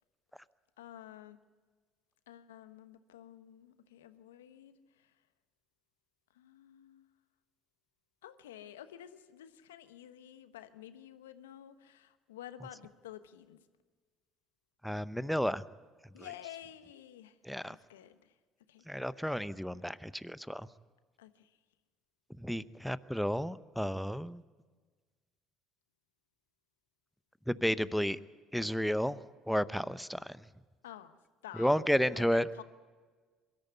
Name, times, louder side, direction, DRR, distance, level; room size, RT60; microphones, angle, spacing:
voice 1, 0.8-1.4 2.3-5.1 6.3-7.1 8.2-13.6 16.1-17.4 17.6-18.4 18.7-18.9 21.2-21.6 30.8-31.2 31.4-32.6, left 11 dB, 90° left, 1.1 m, -51 dB
voice 2, 14.8-15.6 16.2-16.3 17.4-17.8 18.9-20.7 22.4-24.4 27.5-28.2 28.5-30.4 31.6-32.5, equal, ahead, 0.8 m, -32 dB
23.0 x 13.5 x 9.4 m
hypercardioid pair, 65°, 0 cm